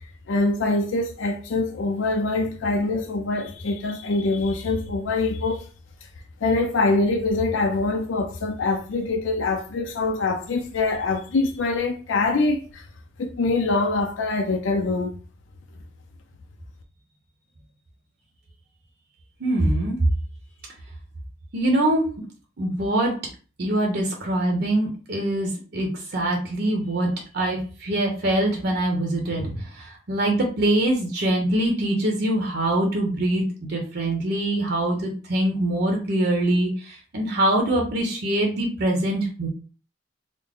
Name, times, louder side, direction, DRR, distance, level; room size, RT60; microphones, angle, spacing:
voice 1, 0.3-5.6 6.4-12.8 13.2-15.2, left 3 dB, 85° left, 0.5 m, -24 dB
voice 2, 19.4-20.0 21.5-22.1 22.6-23.2 23.6-39.5, right 1 dB, 60° right, 0.8 m, -24 dB
3.9 x 2.1 x 3.5 m
head